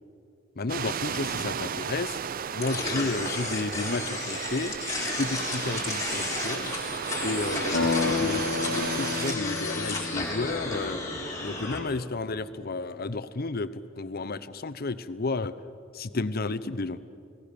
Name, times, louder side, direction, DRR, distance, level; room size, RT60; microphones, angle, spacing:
voice 1, 0.6-2.2 2.5-4.8 5.2-6.7 7.2-8.5 8.7-11.0 11.4-13.7 14.0-15.5 15.9-17.0, left 3 dB, 50° left, 14 dB, 0.8 m, -32 dB
sound 1, 0.7-9.4, right 7 dB, 45° right, 0.5 m, -34 dB
sound 2, 2.6-11.8, left 3 dB, 15° left, 3.8 m, -33 dB
sound 3, 7.7-11.5, left 4 dB, 70° left, 1.5 m, -31 dB
29.0 x 18.0 x 6.8 m, 2.6 s
head